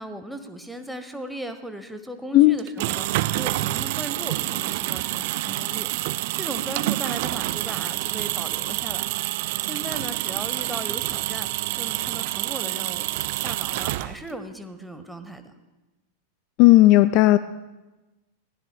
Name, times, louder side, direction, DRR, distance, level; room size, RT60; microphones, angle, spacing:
voice 1, 0.0-5.9 6.4-9.1 9.6-11.5 11.8-13.1 13.4-15.5, right 1 dB, ahead, 8 dB, 1.0 m, -37 dB
sound 1, 2.6-14.4, right 18 dB, 50° right, 0.3 m, -28 dB
voice 2, 16.6-17.4, left 17 dB, 40° left, 14 dB, 0.3 m, -14 dB
21.0 x 16.0 x 2.2 m, 1.1 s
figure-of-eight pair, 90°, 0 cm